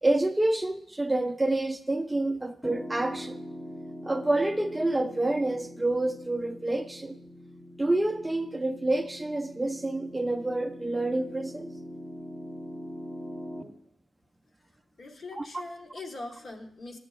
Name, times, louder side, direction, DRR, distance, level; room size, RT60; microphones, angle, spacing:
voice 1, 0.0-3.4 4.0-7.2 7.8-11.7 15.3-15.6, right 2 dB, 15° right, 0.3 m, -28 dB
Piano, 2.6-13.6, equal, 10° left, 0.9 m, -42 dB
voice 2, 15.0-17.0, left 2 dB, 50° left, 1.0 m, -41 dB
13.0 x 7.5 x 2.3 m
wide cardioid pair, 135°, 0 cm